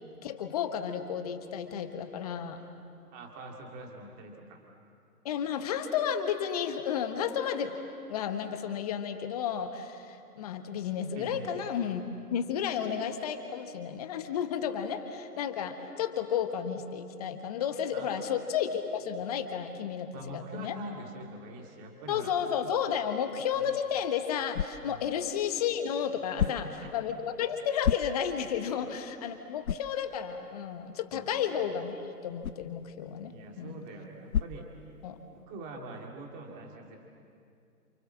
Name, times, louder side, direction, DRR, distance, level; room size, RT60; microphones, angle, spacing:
voice 1, 0.2-2.6 5.2-7.8 8.1-20.8 22.1-26.7 26.9-33.8 35.0-35.2, left 8 dB, 25° left, 7 dB, 1.4 m, -32 dB
voice 2, 3.1-4.6 11.1-11.7 17.9-18.1 20.1-22.3 23.6-23.8 24.8-25.1 26.3-26.9 31.1-31.3 33.3-34.7 35.3-37.0, right 2 dB, 15° right, 1 dB, 2.3 m, -44 dB
sound 1, 23.7-35.4, left 9 dB, 65° left, 0.6 m, -38 dB
29.0 x 27.5 x 7.5 m, 2.5 s
figure-of-eight pair, 140°, 46 cm